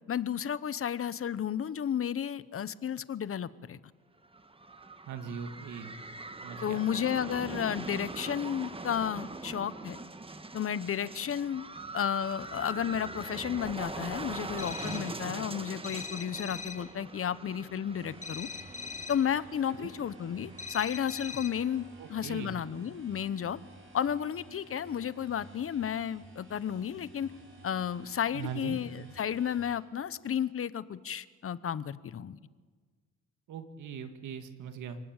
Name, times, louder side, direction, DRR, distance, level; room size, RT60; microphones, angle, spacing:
voice 1, 0.1-3.8 6.6-10.0 10.5-11.6 11.9-18.5 19.1-23.6 23.9-27.3 27.6-32.4, left 8 dB, 45° left, 16 dB, 1.0 m, -32 dB
sound 1, 4.2-21.9, right 3 dB, 20° right, 1.5 m, -43 dB
voice 2, 5.1-5.9 6.4-6.8 19.7-19.9 22.0-22.6 28.3-28.8 33.5-35.0, right 7 dB, 80° right, 8 dB, 2.2 m, -40 dB
sound 2, 14.6-15.2 15.8-16.9 18.2-19.3 20.6-21.7, left 5 dB, 25° left, 1.7 m, -41 dB
sound 3, 17.9-29.8, right 2 dB, 45° right, 6.4 m, -53 dB
29.0 x 18.5 x 9.0 m, 1.5 s
cardioid pair, 90°, 30 cm